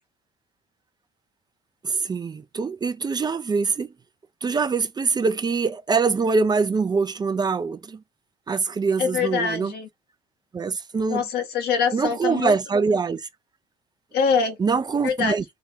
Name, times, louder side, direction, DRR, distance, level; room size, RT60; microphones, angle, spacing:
voice 1, 1.8-3.9 4.4-8.0 8.5-9.7 10.5-11.3 11.9-13.3 14.6-15.4, right 4 dB, 25° right, 0.5 m, -24 dB
voice 2, 9.0-9.9 11.1-12.6 14.1-14.6 15.0-15.4, left 6 dB, 70° left, 1.3 m, -24 dB
4.7 x 2.7 x 3.4 m
cardioid pair, 110°, 17 cm